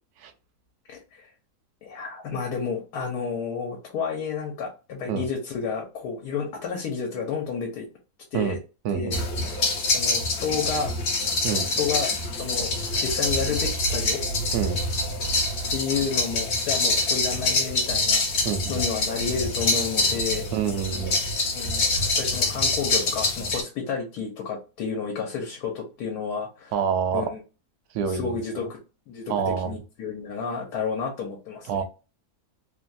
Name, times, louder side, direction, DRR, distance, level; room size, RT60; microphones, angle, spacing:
voice 1, 0.9-1.3 1.8-7.9 8.3-8.6 8.9-9.2 9.9-10.9 11.8-12.1 12.4-12.7 13.0-14.2 15.7-20.5 21.5-26.7 27.1-27.4 28.0-28.8 29.1-31.7, left 6 dB, 75° left, 1.3 m, -31 dB
voice 2, 8.8-9.2 11.4-11.7 14.5-14.8 18.4-18.8 20.5-21.2 26.7-27.3 27.9-28.7 29.3-29.8 31.7-31.8, right 7 dB, 75° right, 1.0 m, -27 dB
sound 1, 9.1-23.6, left 2 dB, 55° left, 0.8 m, -25 dB
3.2 x 2.3 x 2.5 m
omnidirectional pair, 1.7 m